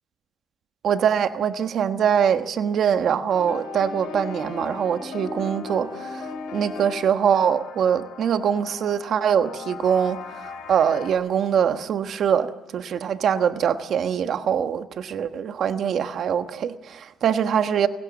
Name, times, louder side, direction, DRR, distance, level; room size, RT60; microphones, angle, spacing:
voice 1, 0.8-17.9, right 8 dB, 55° right, 1.3 m, -23 dB
sound 1, 3.3-11.1, left 4 dB, 90° left, 6.5 m, -37 dB
28.5 x 17.5 x 7.3 m
cardioid pair, 125°, 0 cm